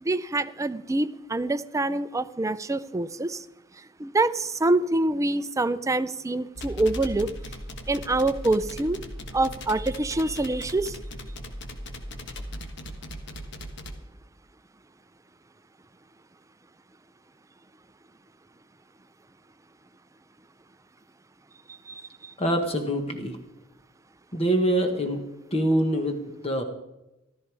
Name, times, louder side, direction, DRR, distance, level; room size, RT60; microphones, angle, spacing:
voice 1, 0.0-3.4 4.0-7.3 7.9-9.0 9.3-11.0 21.9-22.3, right 2 dB, 15° right, 13 dB, 0.5 m, -26 dB
sound 1, 6.6-13.9, left 1 dB, 60° left, 1.4 m, -38 dB
voice 2, 22.4-23.4 24.3-25.2 25.5-26.6, right 1 dB, 30° left, 5 dB, 1.3 m, -25 dB
14.0 x 13.0 x 4.8 m, 0.95 s
head